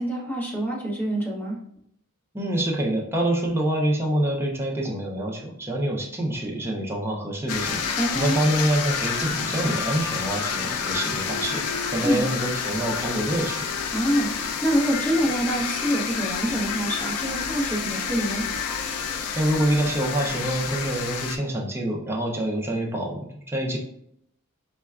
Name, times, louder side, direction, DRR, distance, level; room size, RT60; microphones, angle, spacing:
voice 1, 0.0-1.6 8.0-8.4 12.0-12.3 13.9-18.4, equal, 10° left, -4 dB, 0.8 m, -26 dB
voice 2, 2.3-13.7 19.4-23.8, right 1 dB, 10° right, -1 dB, 0.5 m, -26 dB
sound 1, 7.5-21.4, left 6 dB, 80° left, 0.4 m, -29 dB
4.4 x 2.2 x 2.3 m, 0.73 s
head